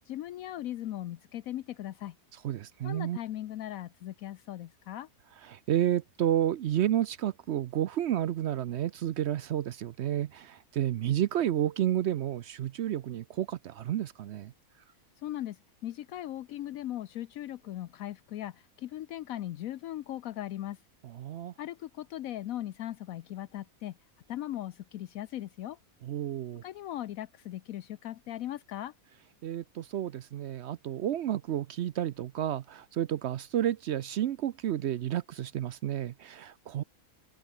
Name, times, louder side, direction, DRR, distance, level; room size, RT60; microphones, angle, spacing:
voice 1, 0.1-2.1 2.8-5.1 15.2-20.8 21.6-24.0 24.3-25.8 26.6-28.9, left 13 dB, 75° left, 1.1 m, -38 dB
voice 2, 2.4-3.2 5.5-14.5 21.0-21.5 26.0-26.6 29.4-36.8, right 11 dB, 65° right, 0.7 m, -31 dB
omnidirectional pair, 1.5 m